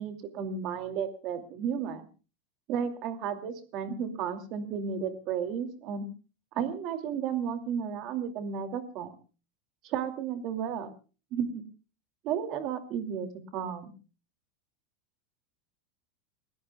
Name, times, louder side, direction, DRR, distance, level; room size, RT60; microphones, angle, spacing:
voice 1, 0.0-2.1 2.7-6.1 6.5-9.1 9.8-10.9 11.3-11.5 12.2-13.9, right 7 dB, 40° right, 7 dB, 2.5 m, -33 dB
30.0 x 16.5 x 2.3 m, 0.35 s
supercardioid pair, 170°, 0 cm